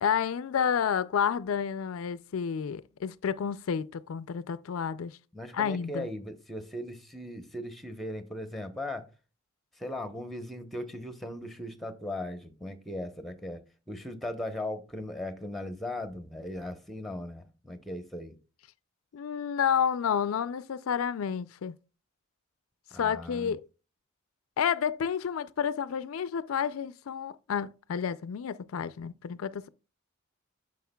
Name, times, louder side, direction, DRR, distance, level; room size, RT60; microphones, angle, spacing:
voice 1, 0.0-5.1 5.5-6.1 19.1-21.7 23.0-23.7 24.6-29.7, left 7 dB, 80° left, 0.4 m, -30 dB
voice 2, 5.3-9.1 9.7-13.6 13.9-18.3 22.9-23.5, left 1 dB, ahead, 0.9 m, -38 dB
9.3 x 6.5 x 2.2 m
head